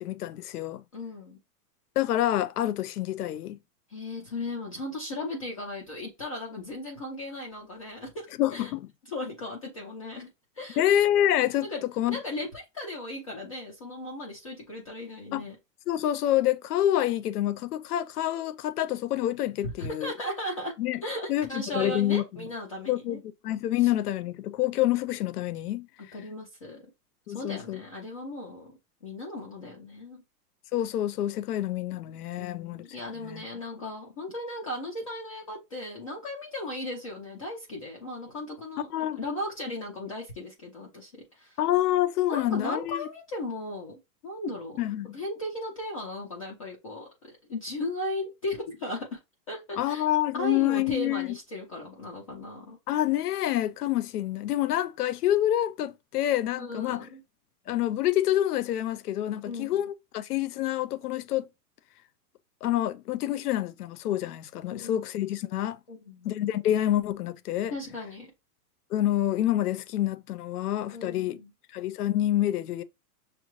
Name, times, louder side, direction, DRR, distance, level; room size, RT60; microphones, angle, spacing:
voice 1, 0.0-0.8 2.0-3.6 8.4-8.9 10.8-11.7 12.0-12.2 15.3-15.5 15.9-20.1 20.8-21.0 21.3-22.5 22.9-25.9 27.3-27.8 30.7-32.9 33.2-33.4 38.9-39.2 41.6-43.0 44.8-45.2 49.8-51.3 52.9-57.1 57.7-61.5 62.6-65.8 66.2-67.7 68.9-71.4 71.7-72.8, left 13 dB, 70° left, 0.6 m, -27 dB
voice 2, 0.9-1.4 3.9-8.1 8.5-8.7 9.1-10.3 10.6-10.8 11.6-11.8 12.1-15.6 19.6-20.7 21.0-23.2 26.1-26.8 27.3-30.2 32.4-41.6 42.3-44.8 45.1-47.1 47.5-49.2 49.5-50.1 50.3-52.8 56.6-57.2 59.5-59.8 64.7-65.0 65.9-66.3 67.7-68.3 70.9-71.5, left 1 dB, 25° left, 0.4 m, -36 dB
6.3 x 2.2 x 3.0 m
hypercardioid pair, 160°, 48 cm